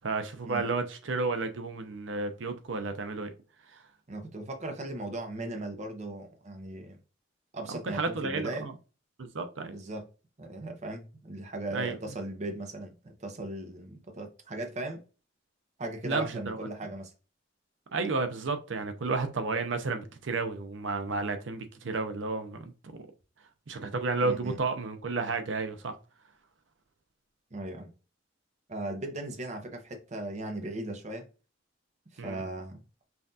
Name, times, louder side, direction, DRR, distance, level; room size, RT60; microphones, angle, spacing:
voice 1, 0.0-3.3 3.7-3.8 7.7-8.7 9.2-9.7 11.7-12.0 16.0-16.7 17.9-23.1 23.7-25.9 32.2-32.4, right 3 dB, 80° right, 0.7 m, -32 dB
voice 2, 4.1-7.0 7.5-8.7 9.6-10.1 10.4-12.9 13.2-15.0 15.8-17.1 24.2-24.6 27.5-27.9 28.7-31.3 32.1-32.8, right 2 dB, 40° right, 0.7 m, -37 dB
5.6 x 2.4 x 2.7 m
head